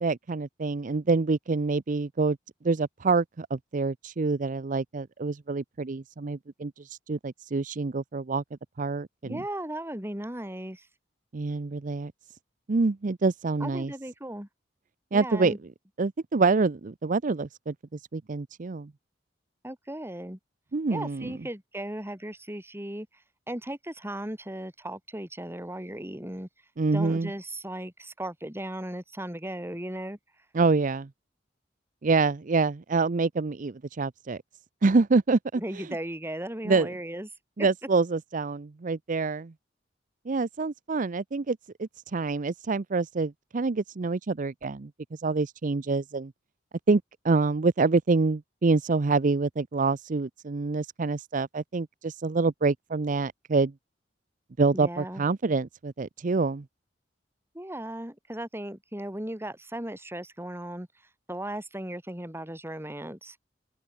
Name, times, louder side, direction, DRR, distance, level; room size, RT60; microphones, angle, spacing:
voice 1, 0.0-2.4 2.6-8.4 8.8-9.4 11.3-12.1 12.7-13.9 15.1-15.5 16.0-18.9 20.7-21.3 26.8-27.3 30.5-31.1 32.0-34.4 34.8-35.8 36.6-36.9 37.6-39.5 40.3-46.3 46.9-53.7 54.6-56.6, right 3 dB, 45° right, 0.6 m, -26 dB
voice 2, 9.2-10.9 13.6-14.5 15.1-15.6 19.6-20.4 20.9-23.1 23.5-26.5 26.9-30.2 35.6-37.3 54.7-55.2 57.5-60.9 61.3-63.4, right 1 dB, 15° right, 5.7 m, -36 dB
open air
head